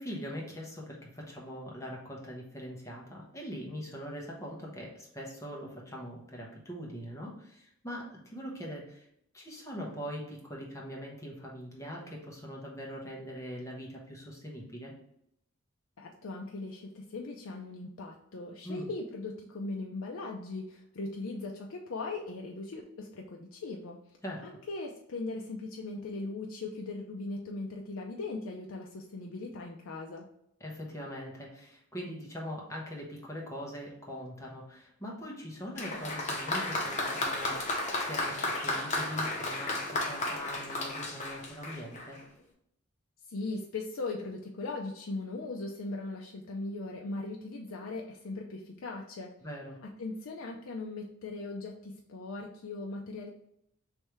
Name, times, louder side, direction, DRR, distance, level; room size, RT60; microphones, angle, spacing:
voice 1, 0.0-9.1 9.3-14.9 18.6-18.9 24.2-24.4 30.6-42.2 49.4-49.8, equal, 15° left, -2 dB, 1.1 m, -42 dB
voice 2, 16.0-24.0 24.4-30.2 43.3-49.3 49.8-53.3, left 3 dB, 65° left, 0 dB, 0.5 m, -39 dB
Applause, 35.7-42.2, left 2 dB, 35° left, 0.9 m, -33 dB
3.4 x 3.1 x 4.5 m, 0.75 s
head